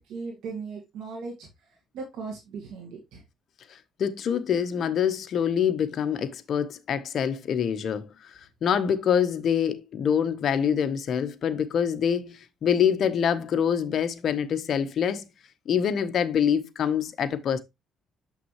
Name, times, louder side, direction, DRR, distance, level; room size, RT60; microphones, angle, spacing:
voice 1, 0.1-3.2, right 4 dB, 80° right, 2.2 m, -38 dB
voice 2, 4.0-8.1 8.6-15.2 15.7-17.6, left 8 dB, 60° left, 1.0 m, -25 dB
7.4 x 5.9 x 3.1 m
cardioid pair, 105°, 0 cm